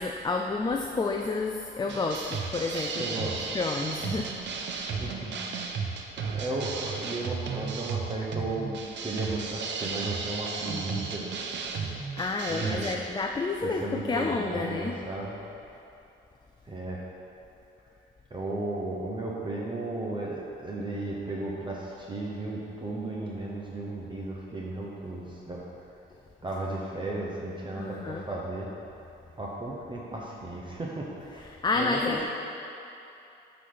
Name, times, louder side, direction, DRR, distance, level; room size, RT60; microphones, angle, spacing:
voice 1, 0.0-4.3 12.2-15.0 27.8-28.2 31.6-32.3, left 3 dB, 20° left, 2 dB, 0.4 m, -30 dB
sound 1, 1.9-13.0, right 5 dB, 65° right, 0.8 m, -34 dB
voice 2, 3.0-3.4 5.0-5.3 6.2-8.7 9.0-11.4 12.5-13.1 13.6-15.4 16.6-17.0 18.3-25.6 26.4-28.7 29.4-31.5 31.8-32.3, right 2 dB, 25° right, -4 dB, 1.0 m, -35 dB
8.2 x 4.1 x 5.7 m, 2.8 s
cardioid pair, 90°, 20 cm